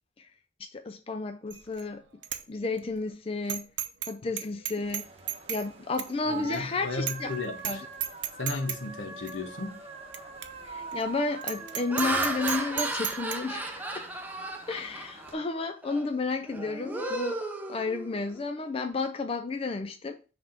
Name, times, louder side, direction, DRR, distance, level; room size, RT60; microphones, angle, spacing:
voice 1, 0.6-2.0 2.5-3.7 4.1-5.1 5.5-7.3 7.6-7.9 10.6-14.1 14.7-17.4 17.7-20.2, left 3 dB, 30° left, 0.4 m, -32 dB
Bicycle bell, 1.5-1.8 2.2-2.4 2.8-2.9 3.5-4.1 4.4-5.7 6.0-6.1 6.5-6.6 7.1-7.3 7.6-7.8 8.0-8.8 9.3-9.4 10.1-10.2 10.4-10.5 10.9-11.0 11.4-13.4, right 11 dB, 60° right, 0.6 m, -33 dB
sound 1, 4.8-15.3, right 4 dB, 30° right, 1.0 m, -44 dB
voice 2, 6.3-7.8 8.4-9.8, left 3 dB, 75° left, 1.0 m, -35 dB
Laughter, 9.8-10.1 10.7-11.0 11.6-15.4 15.8-16.1 16.5-18.4, right 2 dB, 10° right, 0.6 m, -34 dB
5.8 x 3.6 x 5.7 m
head